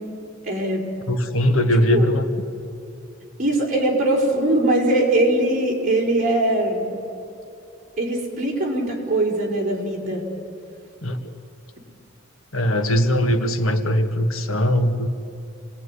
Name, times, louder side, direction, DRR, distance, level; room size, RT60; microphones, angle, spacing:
voice 1, 0.4-0.9 1.9-2.1 3.4-6.9 8.0-10.2, right 1 dB, 40° right, -2 dB, 4.8 m, -21 dB
voice 2, 1.1-2.3 11.0-11.2 12.5-15.1, equal, 85° left, 6 dB, 1.7 m, -20 dB
27.0 x 19.0 x 9.8 m, 2.6 s
head